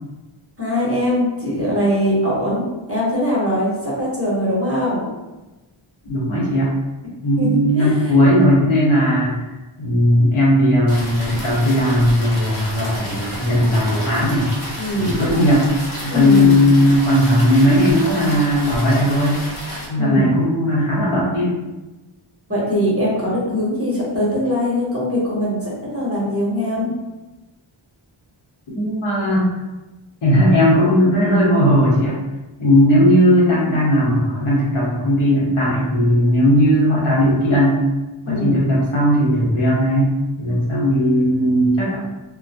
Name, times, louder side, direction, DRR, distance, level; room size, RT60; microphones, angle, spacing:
voice 1, 0.6-5.1 7.4-8.2 14.8-15.2 16.1-16.6 20.0-20.3 22.5-26.9 38.2-38.6, left 1 dB, 30° right, -6 dB, 0.9 m, -21 dB
voice 2, 6.0-6.7 7.2-9.4 9.8-14.5 14.9-15.7 16.0-19.4 19.9-21.6 28.7-29.5 30.2-32.2 32.6-37.8 38.3-40.1 40.4-42.0, equal, 75° left, -6 dB, 1.0 m, -17 dB
sound 1, 10.9-19.9, equal, 45° left, 0.8 m, -31 dB
2.3 x 2.1 x 2.6 m, 1.1 s
wide cardioid pair, 70°, 49 cm